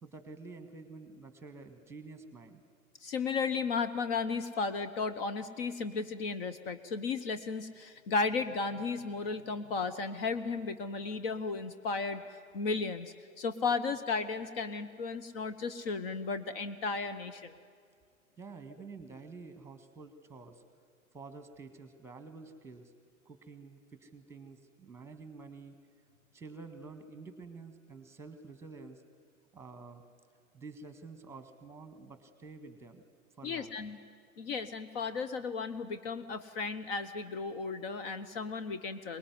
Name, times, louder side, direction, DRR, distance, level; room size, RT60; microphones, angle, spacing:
voice 1, 0.0-2.6 18.4-20.6 21.1-22.9 23.3-25.7 26.3-29.0 29.5-30.0 30.5-33.0 33.4-33.8, right 4 dB, 5° right, 9 dB, 1.7 m, -49 dB
voice 2, 3.0-12.2 12.5-17.5 33.4-34.0 34.4-39.2, left 4 dB, 40° left, 10 dB, 1.1 m, -34 dB
23.5 x 20.0 x 9.7 m, 2.1 s
figure-of-eight pair, 105°, 43 cm